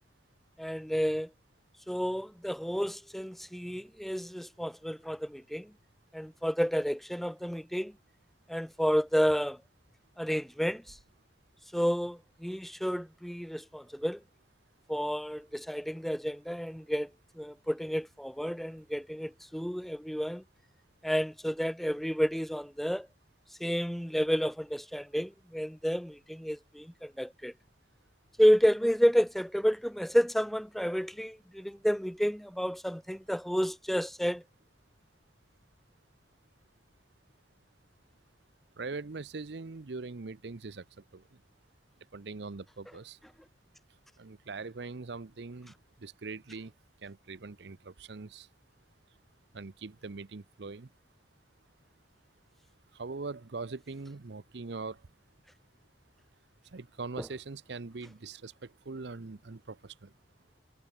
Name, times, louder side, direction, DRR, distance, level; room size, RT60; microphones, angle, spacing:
voice 1, 0.6-1.3 1.9-5.7 6.1-7.9 8.5-9.6 10.2-11.0 11.7-14.2 14.9-17.1 17.4-20.4 21.0-23.1 23.6-27.5 28.4-34.4 57.2-57.3, equal, ahead, 0.8 m, -30 dB
voice 2, 38.8-40.8 41.1-41.2 42.1-43.2 44.2-45.7 46.0-46.7 47.0-48.5 49.5-50.9 52.9-55.0 56.7-60.1, right 3 dB, 65° right, 0.7 m, -42 dB
head